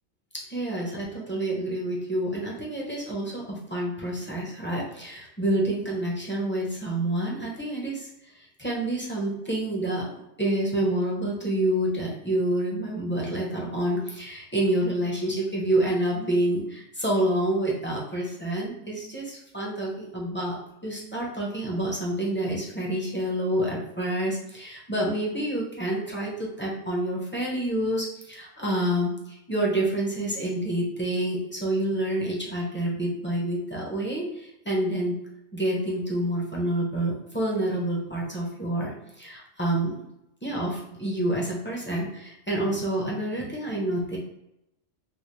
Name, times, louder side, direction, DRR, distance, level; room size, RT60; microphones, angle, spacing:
voice 1, 0.5-8.1 8.6-10.1 10.4-20.6 20.8-35.2 35.5-38.9 39.2-39.9 40.4-44.2, right 1 dB, 10° left, -4 dB, 0.6 m, -28 dB
4.6 x 2.0 x 3.1 m, 0.84 s
omnidirectional pair, 1.4 m